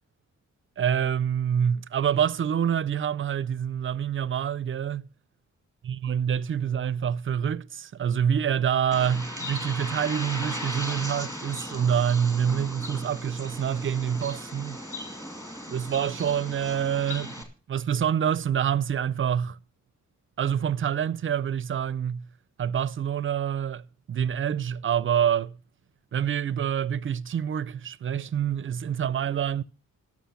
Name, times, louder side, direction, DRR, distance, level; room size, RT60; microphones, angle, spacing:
voice 1, 0.8-5.1 5.9-14.8 15.7-17.3 17.7-19.6 20.4-22.2 22.6-23.8 24.1-25.5 26.1-29.6, right 8 dB, 45° right, 0.4 m, -26 dB
Bird, 8.9-17.4, equal, 10° left, 2.3 m, -37 dB
11.5 x 6.2 x 7.0 m
cardioid pair, 90°, 30 cm